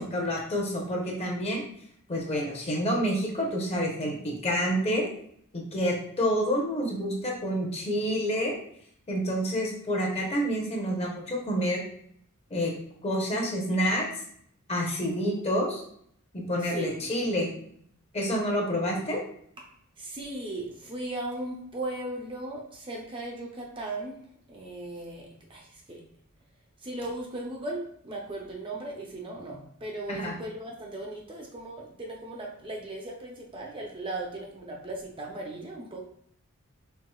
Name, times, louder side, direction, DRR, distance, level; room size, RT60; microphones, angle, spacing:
voice 1, 0.0-1.6 2.1-5.1 5.5-8.6 9.1-11.8 12.5-12.7 13.0-14.1 14.7-15.8 16.3-17.5 18.1-19.2 30.1-30.3, equal, 30° left, -1 dB, 0.9 m, -28 dB
voice 2, 16.6-17.1 20.0-24.2 24.5-26.0 26.8-36.0, right 2 dB, 25° right, 0 dB, 0.6 m, -37 dB
4.7 x 3.4 x 2.3 m, 0.66 s
head